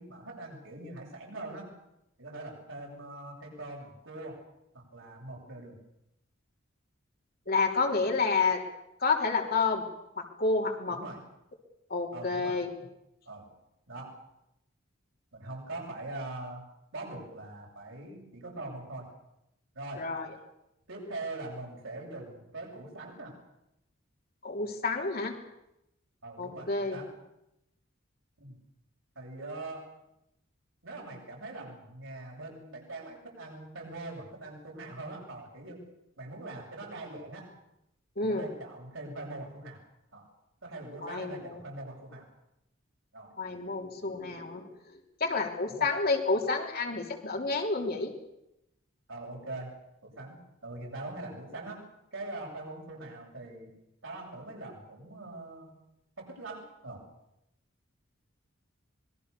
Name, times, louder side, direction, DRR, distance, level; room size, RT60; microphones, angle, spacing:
voice 1, 0.0-1.7 2.2-4.4 4.7-5.8 10.9-11.2 12.1-12.6 13.3-13.5 13.9-14.2 15.3-16.6 16.9-19.1 19.7-20.1 20.9-23.4 26.2-27.1 28.4-28.6 29.1-29.9 30.8-35.8 36.2-37.5 38.2-39.8 40.1-40.3 40.6-42.3 43.1-43.3 45.7-45.9 49.1-49.8 50.0-51.8 52.1-53.7 54.0-55.7 56.2-57.0, right 2 dB, 75° right, -1 dB, 7.9 m, -42 dB
voice 2, 7.5-8.6 9.0-9.9 10.2-11.0 11.9-12.7 20.0-20.3 24.4-25.3 26.4-27.0 38.2-38.5 41.0-41.6 43.4-44.7 45.2-48.1, left 4 dB, 50° left, 1 dB, 3.6 m, -29 dB
26.0 x 21.5 x 7.0 m, 0.87 s
head